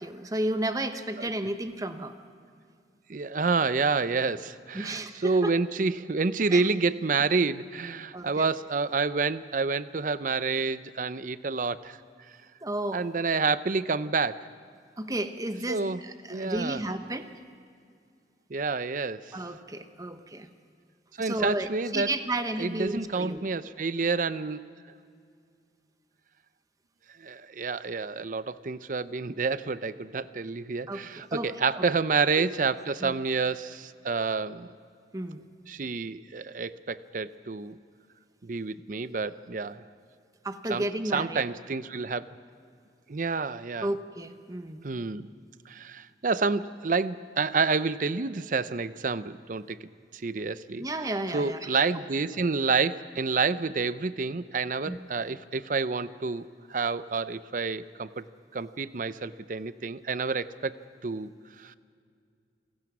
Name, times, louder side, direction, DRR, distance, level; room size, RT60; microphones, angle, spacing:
voice 1, 0.0-2.1 4.7-5.5 6.5-6.6 8.1-8.5 12.6-13.1 15.0-17.3 19.3-20.5 21.2-23.4 30.9-31.5 31.7-31.8 32.4-32.5 33.0-33.1 35.1-35.4 40.4-41.4 43.8-44.8 50.8-51.8 54.9-55.0, right 1 dB, 20° right, 8 dB, 1.0 m, -33 dB
voice 2, 3.1-12.0 12.9-14.4 15.7-16.0 16.3-16.8 18.5-19.4 21.2-22.1 22.6-24.7 27.2-34.7 35.7-37.8 38.4-39.8 40.7-40.8 41.1-42.2 43.1-43.9 44.8-45.3 45.7-49.8 50.1-50.9 51.3-58.2 58.5-60.8 61.0-61.3 61.6-61.7, right 4 dB, 50° right, 15 dB, 0.6 m, -29 dB
28.0 x 17.0 x 6.1 m, 2.3 s
head